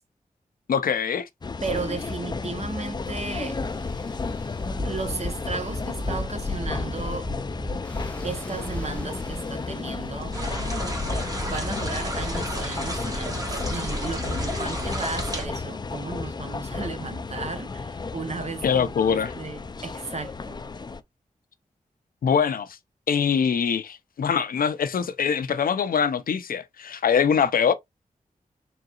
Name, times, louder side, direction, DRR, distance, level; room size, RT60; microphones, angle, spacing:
voice 1, 0.7-1.3 18.6-19.3 22.2-22.7 23.1-27.7, left 7 dB, 80° left, 0.5 m, -23 dB
sound 1, 1.4-21.0, left 4 dB, 30° left, 0.4 m, -33 dB
voice 2, 1.6-3.6 4.8-7.3 8.2-10.4 11.4-20.6, right 4 dB, 50° right, 0.8 m, -34 dB
Ocean, 2.5-12.4, left 1 dB, 10° left, 0.8 m, -35 dB
sound 2, 10.3-15.5, equal, 25° right, 1.5 m, -31 dB
3.9 x 3.8 x 2.4 m
wide cardioid pair, 75°, 14 cm